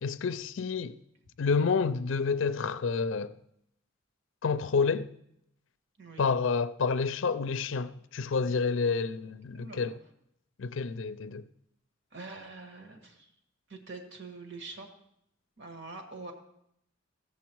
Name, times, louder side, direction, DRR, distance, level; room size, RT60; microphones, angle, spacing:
voice 1, 0.0-0.9 1.4-3.3 4.4-5.1 6.2-9.9 10.6-11.4, left 5 dB, 70° left, 0.5 m, -29 dB
voice 2, 9.5-10.0 12.1-13.3 13.7-14.9 15.6-16.3, right 3 dB, 60° right, 1.7 m, -44 dB
15.5 x 7.2 x 4.6 m
head